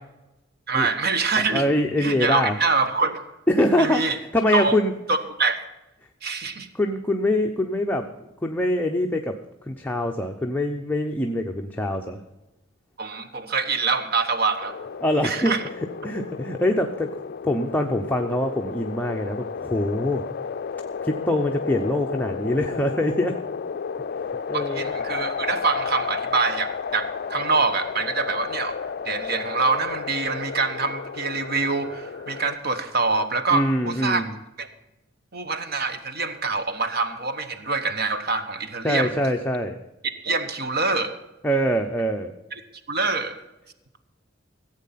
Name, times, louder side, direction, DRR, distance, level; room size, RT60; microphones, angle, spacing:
voice 1, 0.7-1.7 2.0-3.2 3.8-4.2 4.5-4.8 5.1-5.6 6.2-6.7 13.0-14.8 15.2-15.6 24.5-34.2 34.6-34.7 35.3-39.1 40.2-41.2 42.9-43.4, right 4 dB, 55° right, 9 dB, 1.1 m, -25 dB
voice 2, 1.4-2.5 3.5-4.9 6.7-8.1 8.4-9.4 9.7-12.2 15.0-15.5 16.0-17.1 17.4-20.2 21.0-23.4 24.5-24.9 33.5-34.3 38.8-39.8 41.4-42.3, left 1 dB, 10° left, 3 dB, 0.7 m, -24 dB
sound 1, 14.6-32.6, left 6 dB, 50° left, 0.4 m, -32 dB
15.5 x 8.4 x 5.8 m, 0.99 s
head